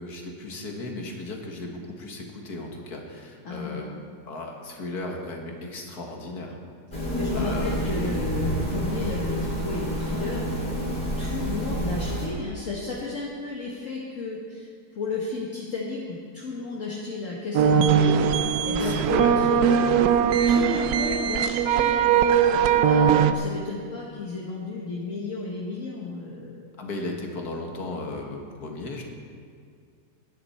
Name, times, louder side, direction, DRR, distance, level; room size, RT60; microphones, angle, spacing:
voice 1, 0.0-3.9 4.3-6.6 7.3-7.8 18.8-19.4 26.8-29.0, left 2 dB, 65° left, 1 dB, 2.2 m, -36 dB
voice 2, 3.4-3.8 6.9-14.7 15.0-19.8 20.5-26.7, left 3 dB, 50° left, -4 dB, 1.8 m, -33 dB
sound 1, 6.9-12.3, equal, 30° left, 3.3 m, -28 dB
sound 2, 17.5-23.3, right 8 dB, 70° right, 1.1 m, -20 dB
19.0 x 10.5 x 4.4 m, 2.1 s
omnidirectional pair, 1.8 m